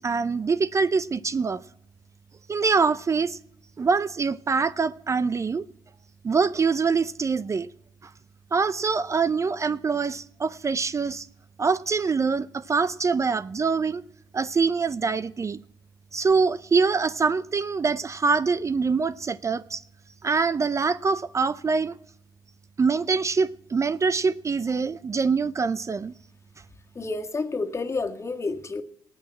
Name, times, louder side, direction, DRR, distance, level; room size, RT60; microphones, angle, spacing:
voice 1, 0.0-1.6 2.5-3.4 3.8-5.7 6.2-7.7 8.5-11.3 11.6-14.0 14.3-15.6 16.1-19.8 20.2-21.9 22.8-26.1, right 4 dB, 35° right, 0.5 m, -24 dB
voice 2, 27.0-28.8, left 3 dB, 30° left, 1.7 m, -29 dB
18.5 x 6.3 x 8.8 m
supercardioid pair, 65°, 9 cm